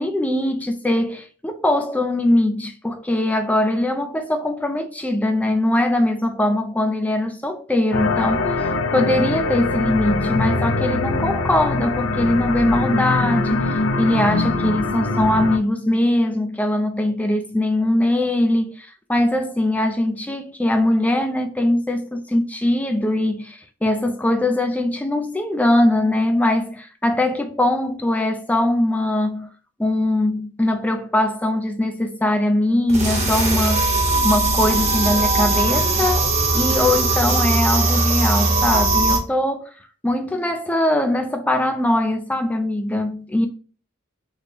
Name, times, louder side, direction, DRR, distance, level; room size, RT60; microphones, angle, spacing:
voice 1, 0.0-29.5 29.8-34.0 34.2-39.7 40.0-43.5, left 1 dB, 5° left, 0.4 m, -21 dB
sound 1, 7.9-15.6, left 3 dB, 70° left, 0.5 m, -22 dB
sound 2, 32.9-39.2, right 3 dB, 30° right, 0.8 m, -19 dB
3.3 x 2.1 x 4.1 m
head